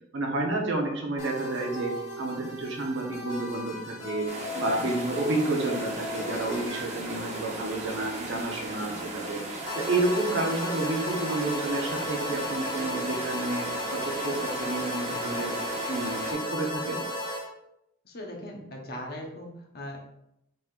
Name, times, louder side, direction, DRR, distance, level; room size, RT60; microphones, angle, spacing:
voice 1, 0.1-4.3 4.5-9.4 9.7-13.7 13.9-15.5 15.9-17.0, right 2 dB, 65° right, 0 dB, 1.0 m, -30 dB
sound 1, 1.2-6.8, left 2 dB, 70° left, 1.6 m, -38 dB
sound 2, 4.3-16.3, right 2 dB, 35° right, 1.0 m, -37 dB
sound 3, 9.7-17.4, left 1 dB, 25° left, 0.9 m, -33 dB
voice 2, 18.0-20.0, left 1 dB, 50° left, 0 dB, 1.0 m, -39 dB
5.4 x 3.7 x 2.5 m, 0.81 s
head